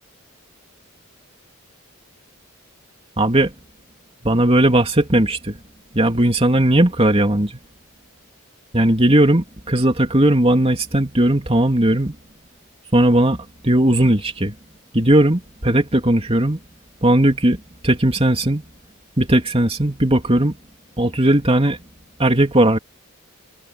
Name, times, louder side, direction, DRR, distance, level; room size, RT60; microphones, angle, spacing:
voice 1, 3.2-3.5 4.2-5.6 5.9-7.6 8.7-12.1 12.9-14.6 14.9-16.6 17.0-18.6 19.2-20.6 21.0-21.8 22.2-22.8, right 1 dB, 25° right, 3.0 m, -17 dB
head